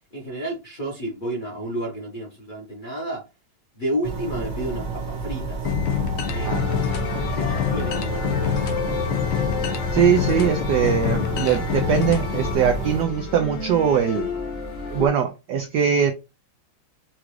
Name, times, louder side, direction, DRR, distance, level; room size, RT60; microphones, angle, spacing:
voice 1, 0.1-3.2 3.8-5.7 6.3-6.9 7.4-8.8, right 1 dB, 35° left, 0.9 m, -31 dB
sound 1, 4.0-13.0, right 4 dB, 30° right, 0.8 m, -31 dB
sound 2, 5.6-12.5, left 11 dB, 90° left, 1.6 m, -26 dB
sound 3, 6.3-15.1, left 4 dB, 60° left, 1.8 m, -32 dB
voice 2, 6.4-7.5 9.9-14.3 14.9-16.1, right 8 dB, 80° right, 0.9 m, -22 dB
5.8 x 2.5 x 3.1 m
omnidirectional pair, 2.3 m